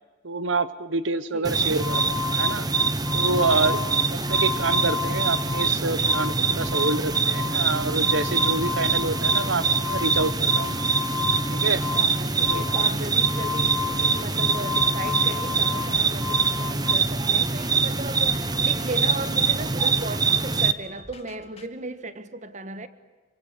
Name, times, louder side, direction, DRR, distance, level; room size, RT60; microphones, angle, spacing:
voice 1, 0.2-2.7 3.1-10.8 11.5-11.8 12.5-12.6, right 3 dB, 80° right, 1.0 m, -27 dB
voice 2, 1.3-1.9 11.9-22.9, right 2 dB, 40° right, 1.6 m, -36 dB
sound 1, 1.4-20.7, right 4 dB, 20° right, 1.0 m, -24 dB
sound 2, 1.8-5.7 6.0-17.0, left 6 dB, 10° left, 1.4 m, -33 dB
sound 3, 3.6-4.0 4.2-6.3 6.6-8.0 8.3-8.6 8.9-11.0 11.2-21.7, left 2 dB, 30° left, 2.6 m, -50 dB
27.0 x 24.0 x 8.3 m
head